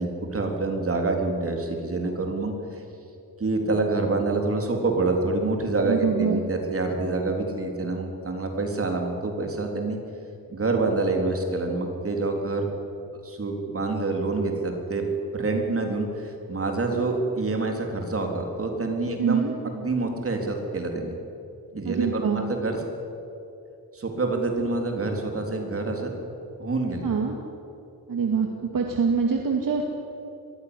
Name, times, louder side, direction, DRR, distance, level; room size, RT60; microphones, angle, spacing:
voice 1, 0.0-2.8 3.4-10.0 10.5-12.7 13.2-15.1 15.3-21.2 21.7-22.8 23.9-26.1 26.6-27.1, right 3 dB, 35° right, 2 dB, 3.8 m, -27 dB
voice 2, 5.9-6.4 19.2-19.5 21.9-22.4 27.0-27.3 28.1-28.5 28.7-29.8, right 6 dB, 60° right, 2 dB, 2.2 m, -24 dB
22.5 x 15.5 x 9.9 m, 2.8 s
wide cardioid pair, 120°, 37 cm